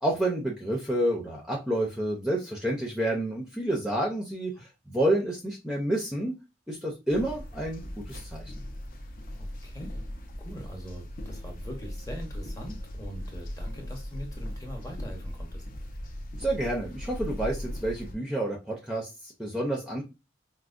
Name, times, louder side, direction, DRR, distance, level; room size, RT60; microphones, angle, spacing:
voice 1, 0.0-6.3 6.7-8.5 16.3-20.0, right 1 dB, 5° right, -1 dB, 0.5 m, -29 dB
sound 1, 7.1-18.1, equal, 50° left, 0.6 m, -38 dB
voice 2, 9.3-10.1 10.4-15.6, equal, 20° left, 1 dB, 0.8 m, -42 dB
4.5 x 2.1 x 2.5 m, 0.26 s
head